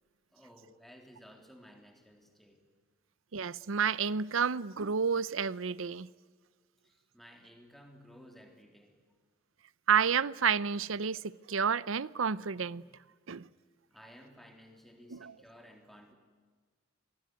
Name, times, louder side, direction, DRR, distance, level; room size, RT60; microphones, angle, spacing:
voice 1, 0.3-2.6 6.8-9.0 13.9-16.1, equal, ahead, 3.5 m, -56 dB
voice 2, 3.3-6.1 9.9-12.8 13.3-13.5 15.1-15.3, right 6 dB, 90° right, 0.7 m, -30 dB
27.0 x 20.5 x 9.5 m
head